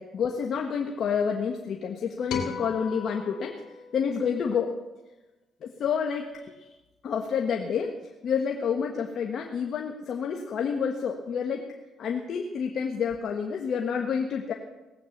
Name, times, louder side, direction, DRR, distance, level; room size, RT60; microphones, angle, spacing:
voice 1, 0.0-3.6 3.9-4.8 5.6-6.7 7.0-7.9 8.2-11.6 12.0-14.5, left 6 dB, 65° left, 2 dB, 1.4 m, -29 dB
sound 1, 2.3-4.8, left 5 dB, 90° left, 3.1 m, -38 dB
18.5 x 8.3 x 7.2 m, 1.1 s
cardioid pair, 90°, 0 cm